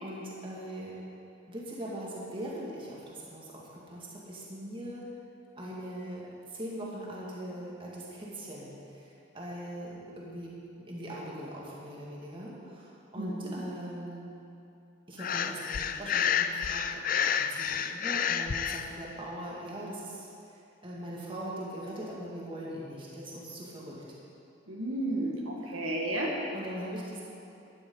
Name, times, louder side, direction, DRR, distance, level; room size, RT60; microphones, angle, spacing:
voice 1, 0.0-1.0 1.5-5.1 5.6-10.5 10.9-14.3 15.1-17.0 17.3-24.0 25.6-25.7 26.5-27.2, right 1 dB, 25° right, -5 dB, 2.1 m, -41 dB
voice 2, 13.2-13.6 24.7-26.3, right 1 dB, 80° right, -2 dB, 1.7 m, -32 dB
Breathing, 15.2-18.8, left 8 dB, 40° left, 0.4 m, -29 dB
11.5 x 10.5 x 5.5 m, 2.8 s
head